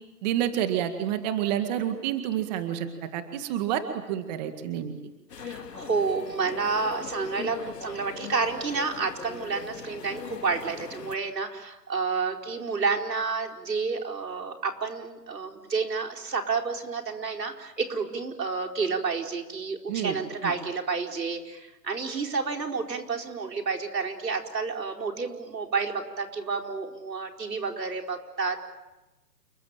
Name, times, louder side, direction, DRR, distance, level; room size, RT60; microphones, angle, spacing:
voice 1, 0.2-3.8 4.1-4.9 19.9-20.2 20.4-20.5, right 11 dB, 25° right, 7 dB, 2.0 m, -29 dB
sound 1, 5.3-11.2, left 6 dB, 75° left, 2.8 m, -40 dB
voice 2, 5.4-28.6, right 4 dB, 90° right, 3 dB, 4.7 m, -30 dB
29.5 x 22.5 x 9.0 m, 1.1 s
hypercardioid pair, 155°, 48 cm